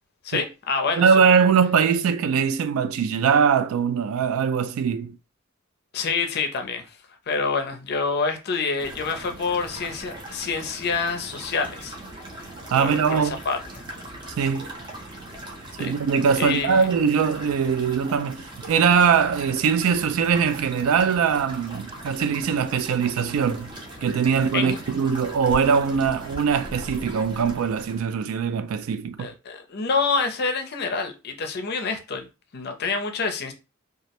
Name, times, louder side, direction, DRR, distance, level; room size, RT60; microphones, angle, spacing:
voice 1, 0.2-1.1 5.9-7.0 7.3-12.0 12.7-13.8 15.8-15.9 16.4-16.8 24.5-24.8 29.2-32.3 32.5-33.5, left 4 dB, 50° left, 0.5 m, -27 dB
voice 2, 1.0-5.2 12.7-13.4 14.4-14.7 15.8-23.7 24.0-29.3, right 6 dB, 80° right, 0.3 m, -21 dB
sound 1, 8.8-28.0, right 1 dB, 20° right, 0.6 m, -40 dB
2.3 x 2.0 x 2.8 m
head